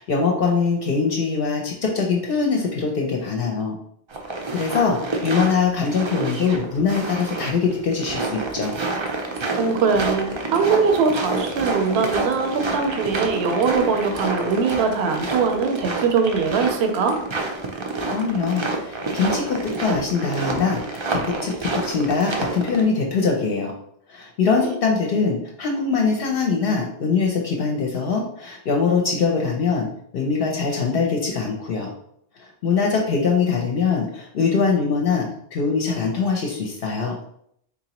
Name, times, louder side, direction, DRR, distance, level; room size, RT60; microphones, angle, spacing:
voice 1, 0.0-3.8 4.5-8.8 18.1-23.7 24.1-29.9 30.1-31.9 32.4-37.2, left 5 dB, 65° left, 0 dB, 0.7 m, -22 dB
sound 1, 4.1-22.8, right 3 dB, 45° right, 0.4 m, -28 dB
voice 2, 9.6-17.2, right 5 dB, 70° right, 5 dB, 0.8 m, -21 dB
3.8 x 2.9 x 2.9 m, 0.70 s
omnidirectional pair, 1.1 m